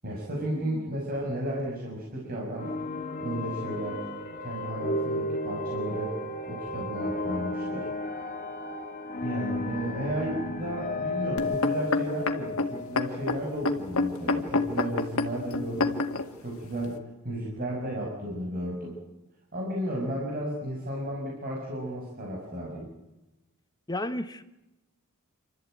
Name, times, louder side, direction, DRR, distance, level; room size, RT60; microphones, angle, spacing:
voice 1, 0.0-2.7 3.2-4.0 4.4-6.2 6.5-7.9 9.2-16.0 16.4-17.0 17.2-19.0 19.5-22.9, right 1 dB, 40° right, 6.1 m, -33 dB
voice 2, 0.5-0.9 23.9-24.4, left 1 dB, 20° left, 1.1 m, -33 dB
sound 1, 2.6-13.8, left 2 dB, 35° left, 2.4 m, -34 dB
sound 2, 11.4-16.3 16.9-17.0, left 3 dB, 65° left, 1.9 m, -27 dB
27.5 x 13.5 x 9.2 m
head